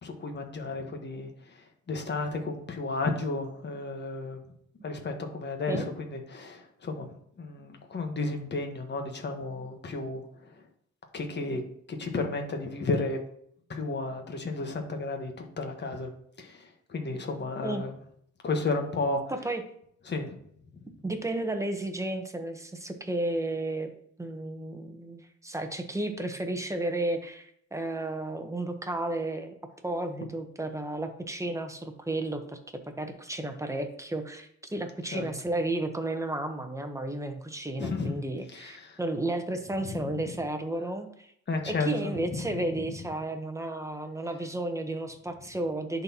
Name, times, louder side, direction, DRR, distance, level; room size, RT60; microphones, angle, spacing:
voice 1, 0.0-4.5 4.8-7.1 7.4-10.5 11.1-11.6 11.9-13.2 13.7-16.1 16.4-17.9 18.4-19.2 20.1-20.3 35.1-35.3 37.8-38.2 38.5-39.0 39.8-40.0 41.5-42.1, left 3 dB, 35° left, 4 dB, 1.3 m, -33 dB
voice 2, 21.0-23.9 24.2-29.5 29.8-41.3 41.7-46.0, right 2 dB, 10° right, 6 dB, 1.0 m, -33 dB
10.5 x 4.1 x 2.9 m, 0.67 s
cardioid pair, 90°, 30 cm